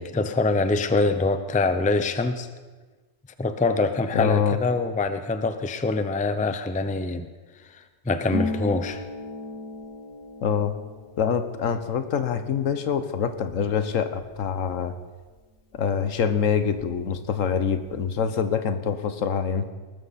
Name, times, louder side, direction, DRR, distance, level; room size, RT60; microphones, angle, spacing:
voice 1, 0.0-2.5 3.4-7.3 7.7-9.0, left 3 dB, 10° left, 9 dB, 0.4 m, -24 dB
voice 2, 4.1-4.6 10.4-10.7 11.2-14.9 15.7-19.7, left 7 dB, 80° left, 10 dB, 1.3 m, -25 dB
Harp, 8.3-15.8 16.0-17.2 17.4-18.1, left 2 dB, 50° left, 1.3 m, -38 dB
19.5 x 13.0 x 4.2 m, 1.3 s
omnidirectional pair, 1.3 m